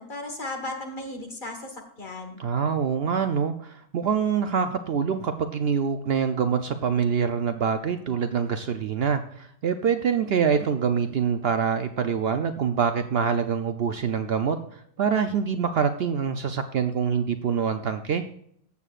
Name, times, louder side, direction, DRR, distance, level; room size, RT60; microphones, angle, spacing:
voice 1, 0.0-2.4, left 2 dB, 40° left, 2 dB, 1.7 m, -35 dB
voice 2, 2.4-18.2, right 7 dB, 60° right, 8 dB, 0.7 m, -25 dB
14.0 x 8.3 x 2.4 m, 0.67 s
omnidirectional pair, 1.3 m